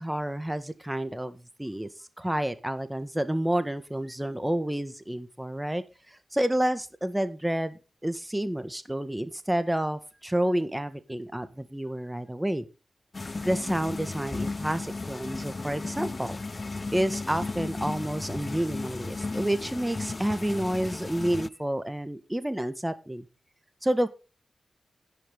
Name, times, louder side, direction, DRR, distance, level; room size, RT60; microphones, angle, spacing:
voice 1, 0.0-1.9 2.2-12.6 13.3-16.4 16.9-23.3 23.8-24.1, right 1 dB, 10° right, 11 dB, 1.8 m, -29 dB
sound 1, 13.1-21.5, left 3 dB, 40° left, 0.6 m, -35 dB
10.5 x 10.5 x 3.8 m, 0.30 s
cardioid pair, 45°, 0 cm